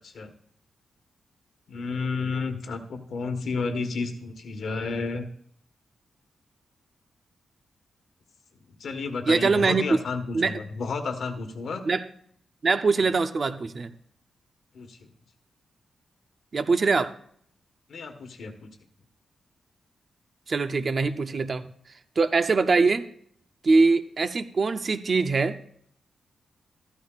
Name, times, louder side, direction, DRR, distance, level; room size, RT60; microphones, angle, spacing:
voice 1, 1.7-5.3 8.8-11.8 14.7-15.0 17.9-18.7, left 4 dB, 60° left, 7 dB, 1.3 m, -31 dB
voice 2, 9.3-9.9 10.3-10.6 11.8-12.0 12.6-13.9 16.5-17.1 20.5-21.6 22.2-23.0 23.6-25.6, right 4 dB, 35° right, 9 dB, 0.6 m, -23 dB
14.0 x 12.5 x 2.4 m, 0.64 s
wide cardioid pair, 165°, 0 cm